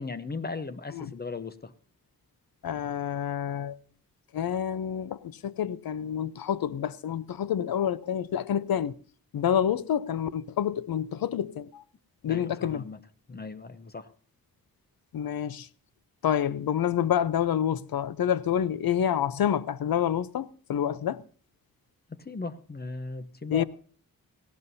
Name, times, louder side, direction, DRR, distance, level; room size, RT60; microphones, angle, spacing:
voice 1, 0.0-1.7 12.3-13.0 13.3-14.1 22.1-23.6, left 3 dB, 30° left, 0.7 m, -37 dB
voice 2, 2.6-3.8 4.3-8.9 9.3-11.8 12.2-12.8 15.1-15.7 16.2-21.2 23.5-23.6, left 9 dB, 85° left, 0.7 m, -28 dB
18.0 x 17.0 x 2.7 m
wide cardioid pair, 140°, 35 cm